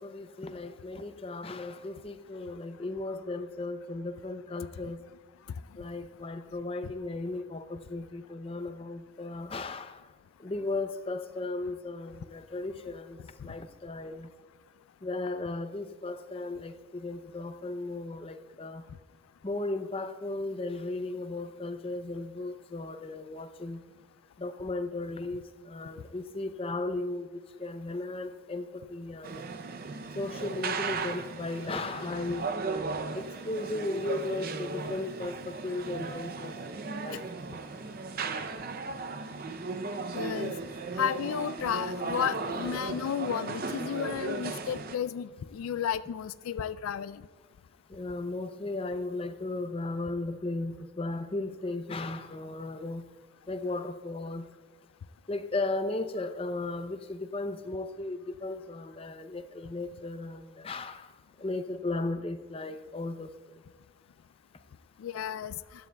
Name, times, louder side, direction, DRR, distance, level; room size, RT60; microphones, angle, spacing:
voice 1, 0.0-5.0 5.8-10.1 10.4-14.3 15.0-18.9 19.4-23.8 24.4-29.5 30.1-32.8 33.1-36.5 36.8-37.6 38.9-39.0 47.9-53.1 53.5-54.5 55.3-63.6, left 2 dB, 25° left, 9 dB, 0.5 m, -36 dB
sound 1, 29.2-45.0, right 4 dB, 45° right, 0.5 m, -36 dB
voice 2, 40.1-40.5 41.0-47.2 65.0-65.5, left 8 dB, 90° left, 16 dB, 0.3 m, -33 dB
16.0 x 11.5 x 2.2 m, 1.4 s
head